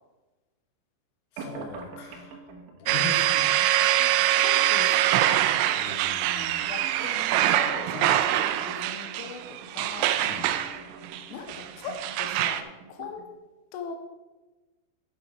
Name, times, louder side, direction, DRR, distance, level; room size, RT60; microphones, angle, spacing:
voice 1, 1.3-2.4 2.8-3.5 5.7-6.6 7.9-8.1 10.1-10.5, left 4 dB, 60° left, 0 dB, 2.2 m, -40 dB
sound 1, 1.4-13.4, right 4 dB, 75° right, 3.0 m, -45 dB
sound 2, 2.9-12.6, right 13 dB, 90° right, 2.6 m, -24 dB
voice 2, 4.4-5.3 6.7-10.3 11.3-13.3 13.7-14.0, left 5 dB, 85° left, 5 dB, 3.4 m, -40 dB
9.8 x 7.1 x 4.7 m, 1.2 s
omnidirectional pair, 5.8 m